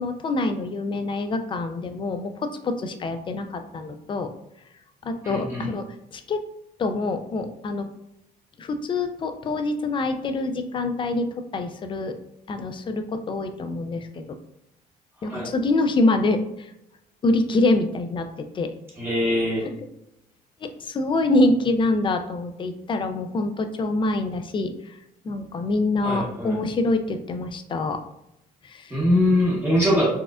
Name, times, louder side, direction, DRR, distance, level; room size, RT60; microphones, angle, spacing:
voice 1, 0.0-4.3 5.0-5.9 6.1-6.4 6.8-7.9 8.6-12.1 12.5-14.4 15.2-16.7 17.2-18.7 19.7-19.8 20.6-25.0 25.2-28.0 28.6-28.9, left 2 dB, 30° left, 8 dB, 0.4 m, -25 dB
voice 2, 5.2-5.7 15.3-15.5 19.0-19.7 26.0-26.6 28.9-30.1, left 1 dB, 15° right, -6 dB, 0.9 m, -22 dB
4.2 x 2.3 x 2.3 m, 0.82 s
cardioid pair, 110°, 17 cm